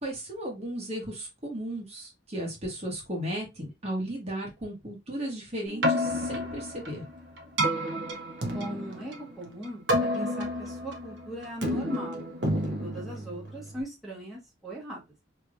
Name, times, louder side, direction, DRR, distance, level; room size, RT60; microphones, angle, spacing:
voice 1, 0.0-7.0, right 1 dB, 35° right, -1 dB, 1.2 m, -35 dB
Keyboard (musical), 5.7-13.8, equal, 80° right, 0.9 m, -30 dB
voice 2, 8.5-9.9 10.1-12.2 12.8-15.0, right 1 dB, ahead, -6 dB, 1.3 m, -39 dB
3.3 x 3.0 x 2.4 m, 0.22 s
head